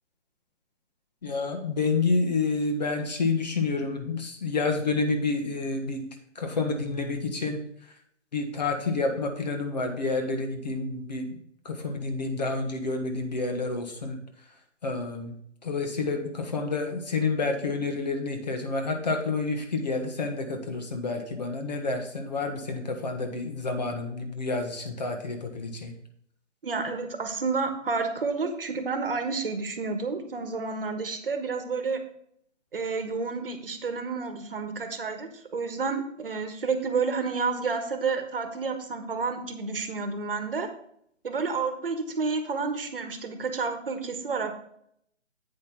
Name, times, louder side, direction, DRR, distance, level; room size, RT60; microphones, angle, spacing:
voice 1, 1.2-6.1 6.3-7.6 8.3-11.2 11.6-14.2 14.8-15.3 15.6-25.9, left 3 dB, 35° left, 5 dB, 1.2 m, -29 dB
voice 2, 26.6-32.0 32.7-40.7 41.2-44.6, right 4 dB, 45° right, 8 dB, 1.4 m, -30 dB
8.8 x 5.3 x 5.8 m, 0.69 s
hypercardioid pair, 165°, 37 cm